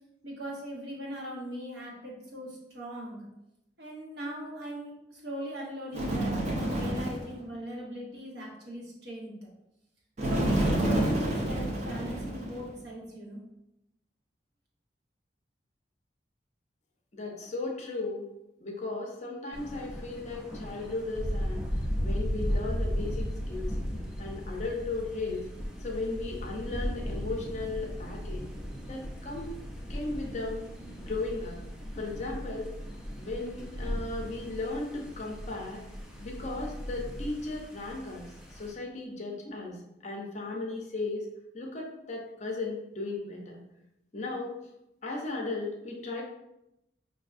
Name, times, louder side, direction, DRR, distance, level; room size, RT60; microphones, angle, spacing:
voice 1, 0.2-3.3 3.8-9.3 10.3-13.4, equal, 65° right, -3 dB, 1.1 m, -40 dB
Bird, 5.9-7.3 10.2-12.7, right 1 dB, 40° right, 0.7 m, -28 dB
voice 2, 17.1-18.2 18.6-21.6 22.0-23.8 24.2-25.5 25.8-28.5 28.9-29.6 29.9-30.7 31.0-31.6 31.9-32.7 33.2-35.8 36.2-41.3 41.5-43.6 44.1-44.5 45.0-46.2, left 3 dB, 40° left, 0 dB, 0.6 m, -36 dB
Thunder, 19.5-38.7, equal, 5° right, 0.5 m, -36 dB
5.2 x 2.6 x 2.5 m, 0.88 s
head